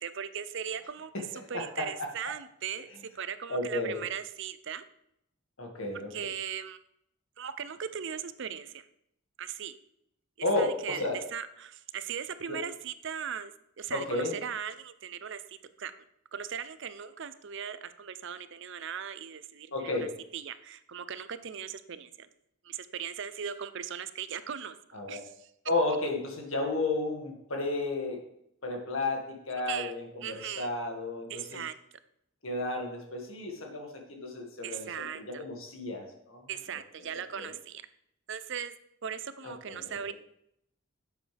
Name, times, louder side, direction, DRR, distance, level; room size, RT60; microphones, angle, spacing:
voice 1, 0.0-4.8 6.1-6.8 7.4-8.8 9.4-9.8 10.6-13.5 13.8-15.9 16.3-20.1 20.3-22.3 22.6-24.8 25.1-25.5 29.7-29.9 30.2-30.7 31.3-31.7 34.6-35.4 36.5-37.8 38.3-38.7 39.0-40.1, right 8 dB, 60° right, 12 dB, 0.6 m, -38 dB
voice 2, 1.5-2.1 3.5-4.0 5.6-6.1 10.4-11.2 12.5-12.6 13.9-14.3 19.7-20.1 24.9-25.2 25.7-28.2 28.6-31.6 32.4-34.9 35.1-36.4 37.1-37.5 39.4-40.1, left 2 dB, 70° left, 2 dB, 2.0 m, -32 dB
11.0 x 7.7 x 3.4 m, 0.75 s
head